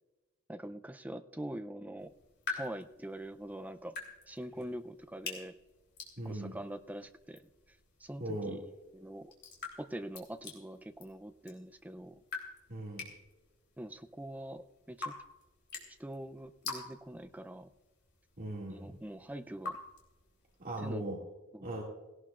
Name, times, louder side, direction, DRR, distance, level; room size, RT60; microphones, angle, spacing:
voice 1, 0.5-2.1 2.5-4.0 4.3-5.6 6.2-7.4 7.7-9.3 9.8-12.2 13.8-15.1 15.9-17.7 18.7-19.8 20.8-21.0 21.5-21.7, right 1 dB, 5° right, 8 dB, 0.4 m, -44 dB
sound 1, 2.0-20.9, left 4 dB, 55° left, 3.3 m, -48 dB
voice 2, 6.2-6.6 8.2-8.6 12.7-13.1 18.4-19.0 20.6-21.2 21.6-21.8, right 1 dB, 40° right, -4 dB, 2.3 m, -38 dB
18.0 x 17.5 x 2.4 m, 1.1 s
head